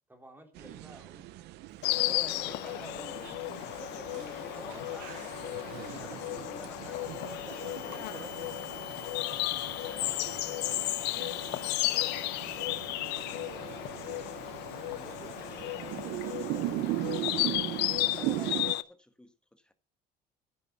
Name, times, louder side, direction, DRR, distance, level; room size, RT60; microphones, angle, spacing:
voice 1, 0.1-1.3 9.8-12.3 12.7-18.2, right 1 dB, 10° right, 3.3 m, -56 dB
sound 1, 0.5-18.7, right 16 dB, 80° right, 0.7 m, -39 dB
Insect, 1.8-18.8, left 19 dB, 85° left, 0.7 m, -34 dB
voice 2, 1.8-8.5 9.4-10.3 14.9-15.4 18.0-19.7, left 1 dB, 5° left, 1.5 m, -49 dB
sound 2, 6.9-13.4, left 10 dB, 60° left, 0.9 m, -48 dB
11.0 x 9.6 x 5.8 m
cardioid pair, 120°, 17 cm